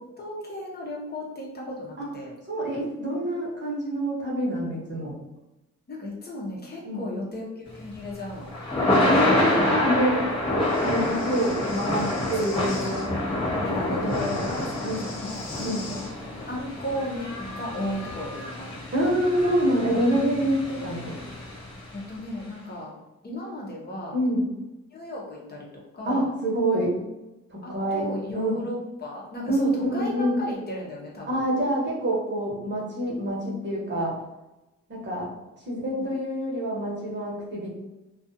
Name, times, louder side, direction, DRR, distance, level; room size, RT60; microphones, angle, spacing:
voice 1, 0.2-2.3 5.9-8.5 12.4-13.2 13.6-15.6 15.9-16.1 16.4-18.8 21.9-22.9 23.2-24.2 24.9-25.7 25.9-26.3 27.6-31.5 35.9-36.1, left 1 dB, 35° left, -3 dB, 0.8 m, -35 dB
voice 2, 2.5-5.1 6.8-7.0 9.1-10.2 10.8-13.1 13.5-14.2 14.8-15.1 15.6-15.9 18.9-21.2 24.1-24.5 26.0-27.0 27.5-28.6 29.5-30.4 31.3-34.2 34.9-35.3 35.7-37.8, right 1 dB, 35° right, -4 dB, 1.0 m, -26 dB
Thunder / Rain, 7.7-22.0, left 1 dB, 15° left, 1.3 m, -28 dB
Breathing, 10.6-13.1 14.0-16.1, left 3 dB, 70° left, 0.9 m, -42 dB
2.4 x 2.4 x 2.6 m, 0.98 s
cardioid pair, 90°, 30 cm